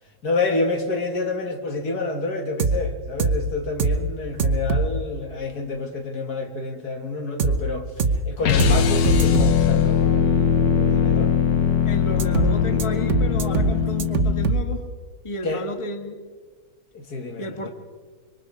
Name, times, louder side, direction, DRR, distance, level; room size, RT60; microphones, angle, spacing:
voice 1, 0.2-11.3 15.4-15.7 16.9-17.7, left 3 dB, 60° left, 2.6 m, -28 dB
sound 1, 2.6-2.8 3.2-3.4 3.8-4.0 4.4-4.9 7.4-7.6 8.0-8.2 8.6-8.8 9.0-9.5 12.2-12.5 12.8-12.9 13.1-13.7 14.0-14.6, right 4 dB, 50° right, 1.2 m, -21 dB
sound 2, 8.4-14.5, left 8 dB, 90° left, 1.7 m, -20 dB
voice 2, 11.8-14.9 15.2-16.2 17.4-17.7, left 1 dB, 20° left, 1.5 m, -32 dB
25.0 x 23.5 x 4.8 m
omnidirectional pair, 1.8 m